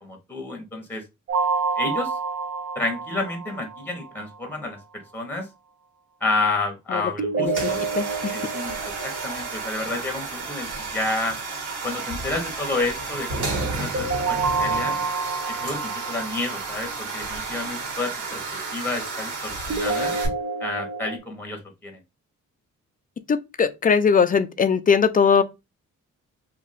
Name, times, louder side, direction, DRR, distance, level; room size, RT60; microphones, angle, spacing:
voice 1, 0.0-1.0 1.8-2.2 2.7-4.8 5.1-5.5 6.2-7.9 8.3-8.8 9.0-11.4 11.8-14.9 15.5-18.4 18.7-20.2 20.6-22.0, left 2 dB, 5° left, 1.0 m, -30 dB
sound 1, 1.3-4.2 7.2-10.2 13.9-17.1 19.7-21.2, right 4 dB, 50° right, 0.5 m, -28 dB
sound 2, 7.5-20.3, right 3 dB, 75° right, 1.8 m, -32 dB
voice 2, 7.9-8.3 23.3-25.4, left 6 dB, 30° left, 0.3 m, -20 dB
2.8 x 2.5 x 4.0 m
wide cardioid pair, 135°, 30 cm